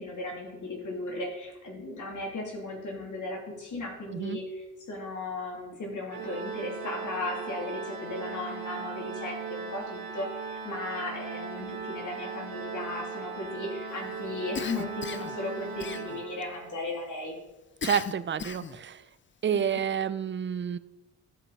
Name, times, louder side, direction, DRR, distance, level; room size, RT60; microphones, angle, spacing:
voice 1, 0.0-17.4 19.5-19.8, left 2 dB, 55° left, -1 dB, 2.9 m, -36 dB
voice 2, 4.1-4.4 17.8-19.0 19.4-20.8, right 7 dB, 35° right, 14 dB, 0.6 m, -29 dB
Organ, 6.1-16.9, right 5 dB, 80° right, 1.6 m, -38 dB
Cough, 14.5-15.4 15.8-16.4 17.8-18.8, left 6 dB, 30° left, 0.7 m, -37 dB
15.0 x 5.3 x 4.2 m, 1.0 s
cardioid pair, 85°, 36 cm